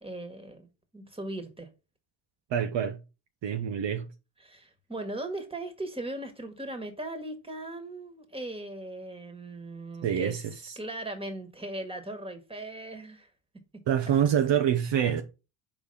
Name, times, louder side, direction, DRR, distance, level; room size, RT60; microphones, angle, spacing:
voice 1, 0.0-0.7 0.9-1.7 4.4-10.4 10.8-13.3 14.1-14.6, right 1 dB, 10° right, 1.7 m, -38 dB
voice 2, 2.5-3.0 3.4-4.1 10.0-10.7 13.9-15.2, right 9 dB, 60° right, 0.9 m, -26 dB
5.1 x 3.5 x 5.4 m
supercardioid pair, 60°, 49 cm